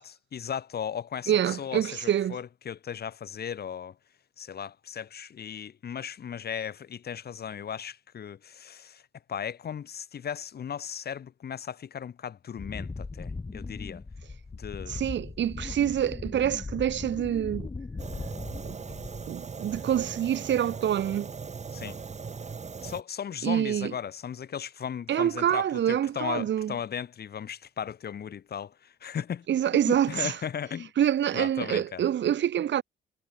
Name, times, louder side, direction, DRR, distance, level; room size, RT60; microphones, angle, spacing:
voice 1, 0.0-3.9 4.4-9.0 9.3-14.0 14.6-15.0 21.7-22.0 22.8-29.5 29.9-30.9 31.3-32.0, left 8 dB, 55° left, 2.5 m, -36 dB
voice 2, 1.3-2.4 14.9-17.7 18.6-18.8 19.3-21.3 23.4-23.9 25.1-26.7 29.5-30.4 31.0-32.8, right 10 dB, 65° right, 3.7 m, -26 dB
Wind, 12.6-19.4 19.7-20.2, left 3 dB, 25° left, 4.4 m, -39 dB
Fire, 18.0-23.0, right 5 dB, 35° right, 4.3 m, -39 dB
cardioid pair, 90°, 20 cm